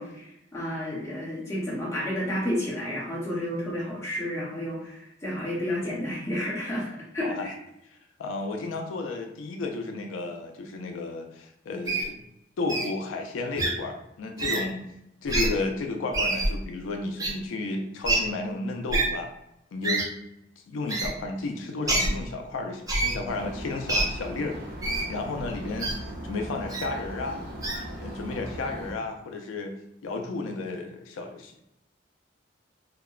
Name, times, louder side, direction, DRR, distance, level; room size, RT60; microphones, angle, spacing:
voice 1, 0.0-7.5, left 1 dB, 15° left, -7 dB, 0.8 m, -31 dB
voice 2, 8.2-12.2 12.6-14.8 15.2-19.3 19.7-20.1 20.7-24.6 25.1-27.4 28.0-29.8 30.0-31.6, left 3 dB, 90° left, 4 dB, 0.4 m, -33 dB
Wild animals, 11.9-12.1 12.7-12.9 13.6-13.7 14.4-14.6 15.3-15.5 16.1-16.5 17.2-17.3 18.0-18.2 18.9-19.0 19.8-20.0 20.9-21.1 21.9-22.1 22.9-23.1 23.9-24.0 24.8-25.0 25.8-25.9 26.7-26.8 27.6-27.8, right 2 dB, 20° right, 0.4 m, -25 dB
sound 1, 23.3-28.9, equal, 65° right, 1.2 m, -38 dB
2.8 x 2.1 x 2.3 m, 0.83 s
head